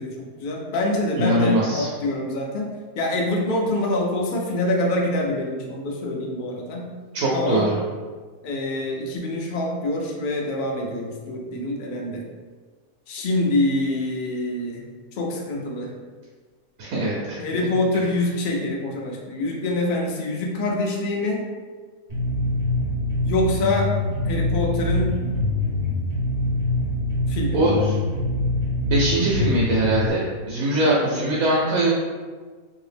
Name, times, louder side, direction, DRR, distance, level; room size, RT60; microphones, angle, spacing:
voice 1, 0.0-6.9 7.3-7.7 8.4-12.2 13.1-14.8 15.1-15.9 17.4-21.4 23.2-23.9 24.2-25.2 27.3-27.7 30.8-31.4, left 1 dB, 75° left, -1 dB, 0.4 m, -25 dB
voice 2, 1.2-1.9 7.1-7.8 16.8-17.4 17.9-18.0 27.5-27.9 28.9-31.9, right 1 dB, 80° right, -4 dB, 1.1 m, -22 dB
sound 1, 22.1-30.1, left 1 dB, 55° right, 1.1 m, -24 dB
2.7 x 2.7 x 3.3 m, 1.5 s
omnidirectional pair, 1.5 m